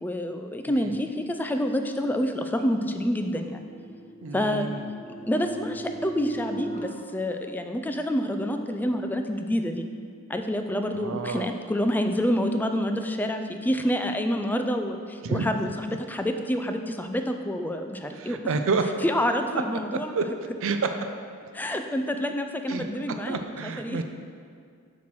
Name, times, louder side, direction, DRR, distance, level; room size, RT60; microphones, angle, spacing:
voice 1, 0.0-3.6 4.3-4.7 5.3-9.9 10.3-18.4 19.0-20.1 21.5-24.0, equal, 10° left, 6 dB, 0.3 m, -28 dB
sound 1, 2.4-6.8, right 1 dB, 35° left, 0.8 m, -38 dB
voice 2, 4.2-4.9 10.9-11.5 15.2-15.5 18.2-18.8 20.1-20.2 20.6-20.9 22.7-22.8 23.3-24.0, right 4 dB, 65° right, 6 dB, 0.4 m, -29 dB
7.2 x 3.1 x 5.9 m, 2.2 s
head